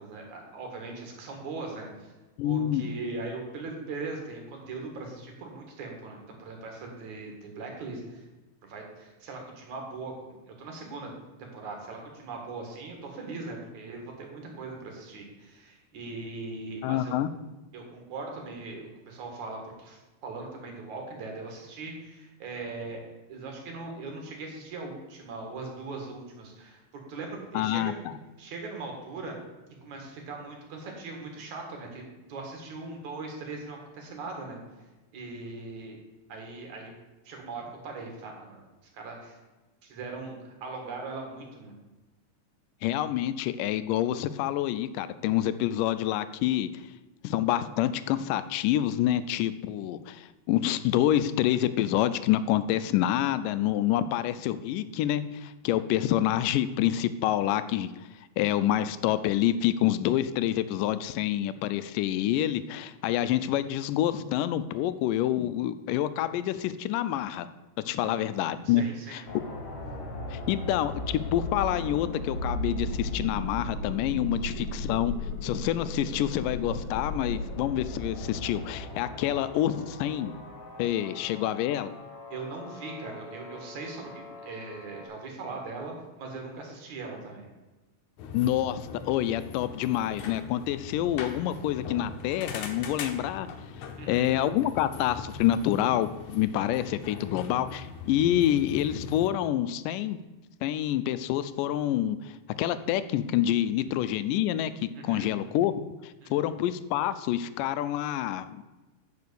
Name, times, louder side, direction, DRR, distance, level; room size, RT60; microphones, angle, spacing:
voice 1, 0.0-2.1 2.4-8.2 8.6-11.1 11.4-17.1 17.7-26.8 27.1-28.0 28.4-29.4 29.8-34.6 35.1-36.0 36.3-36.9 37.2-38.6 38.9-39.4 39.8-41.7 67.9-68.2 68.6-69.2 82.3-87.5 94.0-94.3 105.0-105.3 106.2-106.5, right 3 dB, 65° right, 1 dB, 3.1 m, -40 dB
voice 2, 2.4-2.8 16.8-17.3 27.5-27.9 42.8-46.7 47.2-57.9 58.4-67.5 67.8-68.8 69.1-69.2 70.3-75.1 75.4-80.3 80.8-81.9 88.3-93.5 94.1-100.2 100.6-102.3 102.6-105.7 106.0-108.6, left 12 dB, 85° left, 14 dB, 2.2 m, -27 dB
sound 1, 69.3-85.1, left 1 dB, 55° left, 2.4 m, -37 dB
sound 2, 88.2-99.3, left 5 dB, 70° left, 2.2 m, -41 dB
9.4 x 5.7 x 6.8 m, 1.1 s
omnidirectional pair, 3.7 m